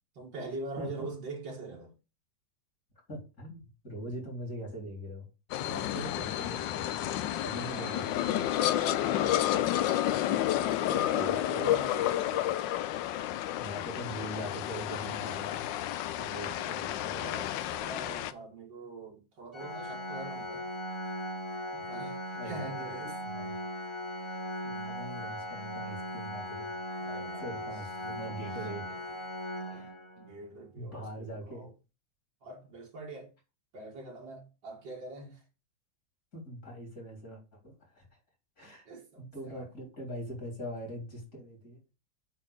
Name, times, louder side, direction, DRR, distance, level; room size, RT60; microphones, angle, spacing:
voice 1, 0.1-1.9 7.6-8.1 8.4-12.5 16.4-20.7 21.9-23.2 27.0-27.7 28.2-28.4 28.7-29.0 29.7-29.9 30.2-31.7 32.4-33.3 33.7-35.4 38.6-39.7, right 2 dB, 75° right, 2.6 m, -44 dB
voice 2, 0.8-1.1 3.1-5.2 5.6-7.1 7.4-8.5 11.1-11.7 13.1-15.6 16.1-17.4 22.4-22.7 23.2-23.5 24.2-26.8 27.4-29.1 29.7-29.9 30.7-31.7 36.3-38.2 38.6-38.9 39.2-41.8, equal, 50° left, 4.4 m, -42 dB
sound 1, 5.5-18.3, left 13 dB, 80° left, 1.3 m, -31 dB
Organ, 19.5-30.4, equal, 30° left, 0.5 m, -38 dB
8.5 x 4.2 x 7.2 m
omnidirectional pair, 2.0 m